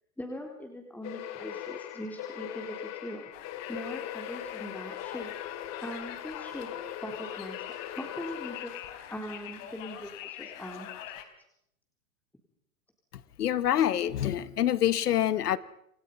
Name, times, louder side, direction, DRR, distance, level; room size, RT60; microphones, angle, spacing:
voice 1, 0.2-3.3 3.7-5.3 5.8-6.7 7.0-8.7 9.1-10.9, equal, 5° left, 3.9 m, -41 dB
sound 1, 1.0-9.3, left 11 dB, 35° left, 2.9 m, -40 dB
Conversation, 3.3-11.2, left 11 dB, 55° left, 3.9 m, -44 dB
voice 2, 13.4-15.6, left 11 dB, 75° left, 1.6 m, -26 dB
29.0 x 28.0 x 5.5 m
hypercardioid pair, 115°, 47 cm